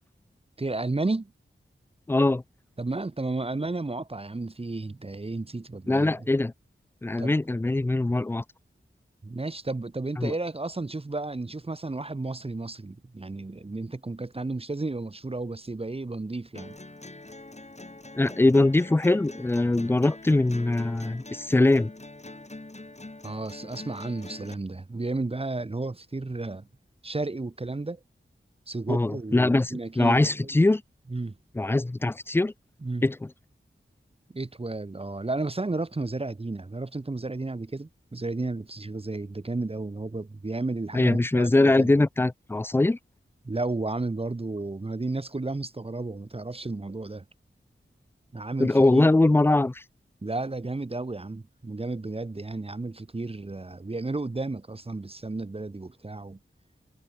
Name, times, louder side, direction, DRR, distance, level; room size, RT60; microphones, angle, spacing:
voice 1, 0.6-1.3 2.8-6.3 7.2-7.3 9.2-16.8 23.2-26.7 27.0-28.0 28.7-30.5 31.1-31.4 32.8-33.0 34.3-41.9 43.4-47.3 48.3-49.1 50.2-56.4, right 2 dB, 30° right, 0.7 m, -32 dB
voice 2, 2.1-2.4 5.9-6.5 7.0-8.4 10.2-10.3 18.2-21.9 28.9-30.8 31.6-32.5 33.0-33.2 40.9-43.0 48.6-49.8, left 2 dB, 10° left, 0.3 m, -22 dB
sound 1, 16.5-24.5, left 2 dB, 30° left, 2.1 m, -44 dB
wide cardioid pair, 50°, 21 cm